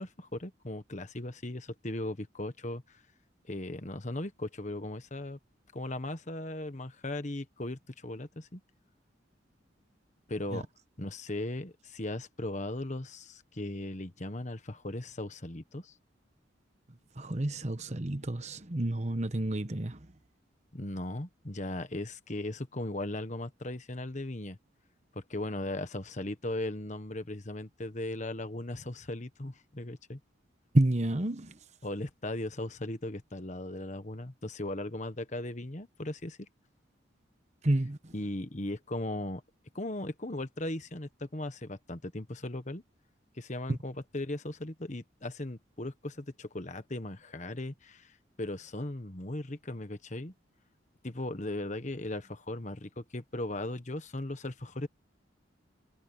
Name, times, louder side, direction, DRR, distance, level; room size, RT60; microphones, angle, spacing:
voice 1, 0.0-3.0 3.5-5.4 5.7-8.6 10.3-10.7 11.0-16.0 20.7-24.6 25.1-30.2 31.8-36.5 38.1-39.4 39.7-42.8 43.3-50.3 51.0-54.9, left 1 dB, 40° left, 1.3 m, -37 dB
voice 2, 17.2-20.1 30.7-31.6 37.6-38.1 43.7-43.8, right 1 dB, 35° right, 1.1 m, -29 dB
head